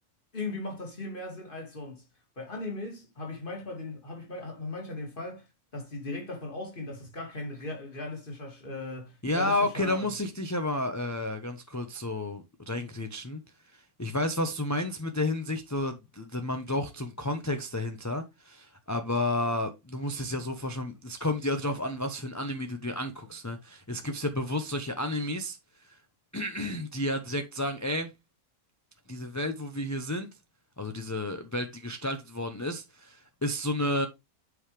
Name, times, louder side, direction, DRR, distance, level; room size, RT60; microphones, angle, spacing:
voice 1, 0.3-2.1 2.4-5.5 5.7-10.1, left 2 dB, 35° left, 2.6 m, -38 dB
voice 2, 9.2-13.4 13.7-25.6 25.8-26.0 26.3-28.1 29.1-30.3 30.8-34.1, left 1 dB, 15° left, 0.8 m, -31 dB
8.1 x 5.6 x 3.3 m
omnidirectional pair, 1.6 m